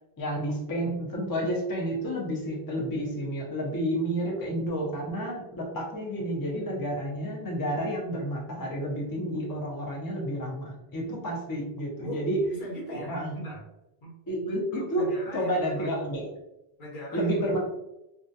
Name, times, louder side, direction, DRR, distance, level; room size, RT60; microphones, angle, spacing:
voice 1, 0.2-12.4 12.9-13.4 14.3-15.1 15.3-16.3 17.1-17.6, equal, 30° left, -3 dB, 0.4 m, -30 dB
voice 2, 12.5-13.6 14.0-15.9 16.8-17.3, equal, 55° left, -4 dB, 1.0 m, -40 dB
2.3 x 2.2 x 2.6 m, 0.91 s
omnidirectional pair, 1.0 m